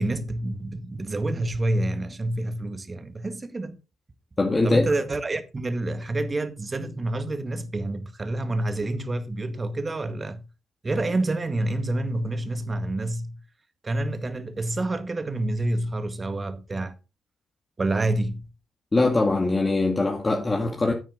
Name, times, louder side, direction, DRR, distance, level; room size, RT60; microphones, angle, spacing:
voice 1, 0.0-3.8 4.5-10.4 10.8-13.4 13.8-16.9 17.8-18.4, right 2 dB, 30° right, 1.8 m, -28 dB
voice 2, 4.4-4.9 18.9-20.9, left 2 dB, 25° left, 2.1 m, -22 dB
9.9 x 9.1 x 4.1 m
hypercardioid pair, 50°, 0 cm